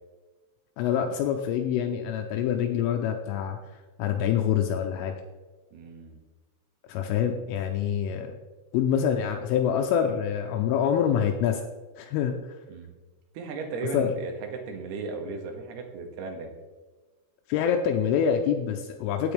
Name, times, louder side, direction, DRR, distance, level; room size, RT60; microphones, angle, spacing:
voice 1, 0.8-3.6 4.0-5.1 6.9-8.3 8.7-11.7 12.0-12.3 13.9-14.2 17.5-19.3, left 8 dB, 85° left, 4 dB, 3.1 m, -26 dB
voice 2, 5.7-6.2 12.7-12.9 13.3-16.5, right 4 dB, 65° right, 3 dB, 2.8 m, -36 dB
16.0 x 7.9 x 3.4 m, 1.3 s
omnidirectional pair, 6.0 m